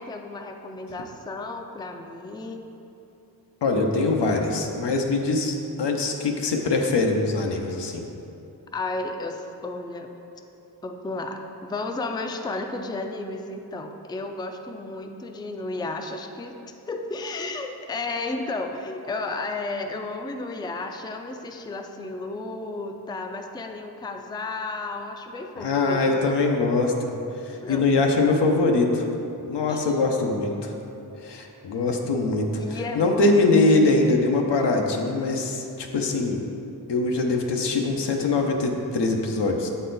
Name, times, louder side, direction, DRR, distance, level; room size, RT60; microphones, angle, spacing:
voice 1, 0.0-2.7 8.7-10.1 10.8-16.6 16.9-26.4 27.6-27.9 29.7-30.0 32.6-33.3, left 2 dB, 10° left, 4 dB, 0.3 m, -33 dB
voice 2, 3.6-8.0 25.6-27.1 27.4-29.0 29.5-30.7 31.2-36.4 36.9-39.7, left 3 dB, 90° left, 2 dB, 0.7 m, -23 dB
7.5 x 4.1 x 3.9 m, 2.8 s
wide cardioid pair, 80°, 40 cm